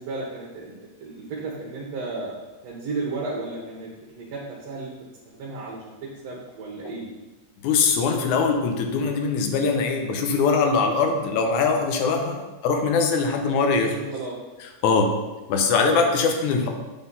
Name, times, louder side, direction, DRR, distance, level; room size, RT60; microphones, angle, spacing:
voice 1, 0.0-2.3 2.6-4.9 5.3-7.1 13.7-14.4 14.8-15.1, right 3 dB, 65° right, -3 dB, 2.2 m, -34 dB
voice 2, 7.6-14.0 14.8-15.1 15.5-16.7, left 4 dB, 80° left, 4 dB, 2.2 m, -22 dB
8.1 x 4.0 x 5.5 m, 1.1 s
omnidirectional pair, 3.4 m